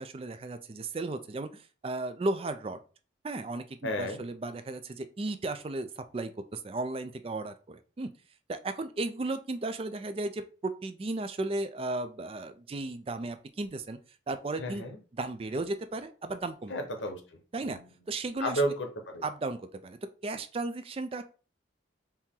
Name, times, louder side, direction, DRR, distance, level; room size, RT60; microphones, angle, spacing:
voice 1, 0.0-2.8 3.2-8.1 8.5-14.0 14.3-14.8 15.2-16.7 17.5-17.8 18.1-18.6 19.2-21.2, right 2 dB, 30° right, 10 dB, 0.3 m, -35 dB
voice 2, 3.8-4.2 14.6-15.0 16.7-17.2 17.6-17.8 18.4-19.2, equal, 85° left, 5 dB, 0.9 m, -32 dB
4.4 x 2.8 x 3.6 m, 0.37 s
head